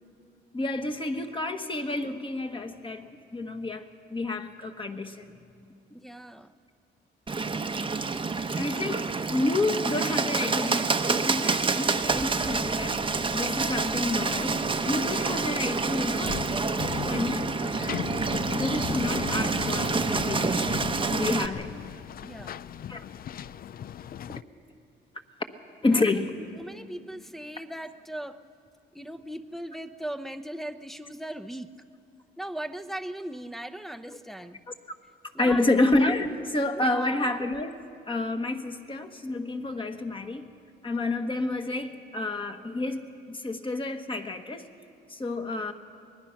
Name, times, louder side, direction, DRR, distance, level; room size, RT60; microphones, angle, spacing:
voice 1, 0.5-3.8 4.1-5.3 8.5-16.6 17.0-17.9 18.5-20.7 21.1-21.7 22.9-23.0 25.8-26.3 35.4-37.8 38.1-40.5 40.8-44.6 45.1-45.7, left 2 dB, 25° left, 5 dB, 1.5 m, -29 dB
voice 2, 6.0-6.5 22.2-22.6 25.9-26.1 26.6-28.4 28.9-31.7 32.4-34.6 35.3-35.7 36.8-37.3, right 1 dB, ahead, 7 dB, 0.8 m, -38 dB
Bird, 7.3-21.5, right 4 dB, 25° right, 0.9 m, -28 dB
sound 1, 12.4-24.4, left 9 dB, 50° left, 0.4 m, -38 dB
24.0 x 20.0 x 5.9 m, 2.4 s
cardioid pair, 90°, 20 cm